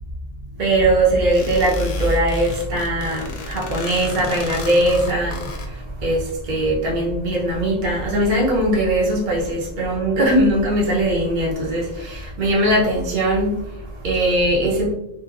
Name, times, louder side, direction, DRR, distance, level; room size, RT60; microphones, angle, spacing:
voice 1, 0.6-14.9, right 1 dB, 50° right, -5 dB, 0.9 m, -20 dB
sound 1, 1.3-5.7, left 3 dB, 60° left, 0.5 m, -35 dB
2.9 x 2.3 x 2.4 m, 0.81 s
omnidirectional pair, 1.1 m